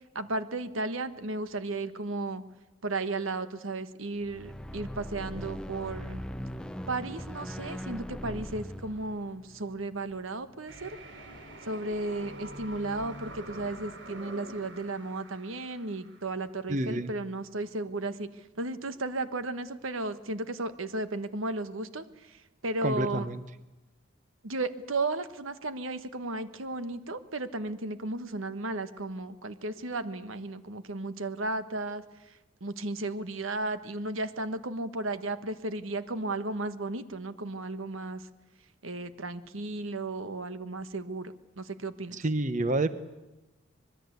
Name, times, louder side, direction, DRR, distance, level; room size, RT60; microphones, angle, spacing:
voice 1, 0.1-2.4 2.8-6.2 6.9-11.0 11.6-18.3 18.5-23.3 24.4-32.0 32.6-38.3 38.8-42.2, right 2 dB, 85° right, 11 dB, 1.4 m, -34 dB
sound 1, 4.2-10.5, equal, 5° left, 0.8 m, -40 dB
sound 2, 10.7-16.6, right 1 dB, 65° right, 3.7 m, -46 dB
voice 2, 16.7-17.1 22.8-23.4 42.1-43.0, right 2 dB, 40° right, 12 dB, 0.9 m, -29 dB
25.0 x 21.5 x 8.2 m, 1.0 s
head